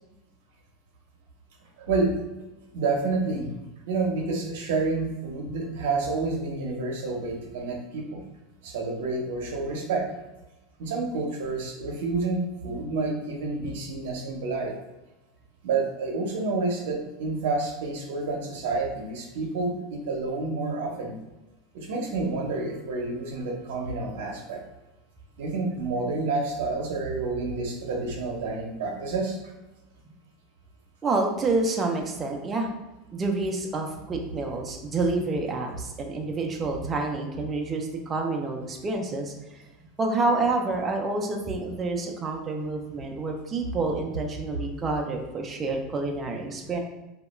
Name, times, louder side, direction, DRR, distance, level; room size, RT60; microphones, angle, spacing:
voice 1, 1.8-2.1 2.7-3.5 3.9-8.2 8.6-10.1 10.8-14.7 15.6-21.1 21.7-24.6 25.4-29.4, right 3 dB, 80° right, 1 dB, 0.6 m, -29 dB
voice 2, 31.0-32.7 33.1-39.3 40.0-46.8, right 3 dB, 20° right, 1 dB, 0.3 m, -28 dB
2.2 x 2.1 x 3.0 m, 1.0 s
supercardioid pair, 140°, 0 cm